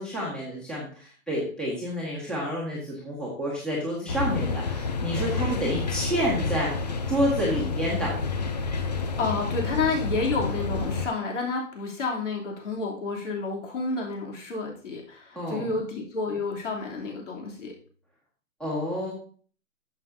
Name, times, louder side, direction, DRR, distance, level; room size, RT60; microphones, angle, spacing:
voice 1, 0.0-8.1 15.3-15.7 18.6-19.1, equal, ahead, -6 dB, 1.7 m, -29 dB
sound 1, 4.1-11.1, left 4 dB, 30° left, 0.5 m, -29 dB
voice 2, 9.2-17.7, left 3 dB, 55° left, -1 dB, 3.2 m, -30 dB
11.0 x 7.4 x 2.7 m, 0.42 s
hypercardioid pair, 155°, 43 cm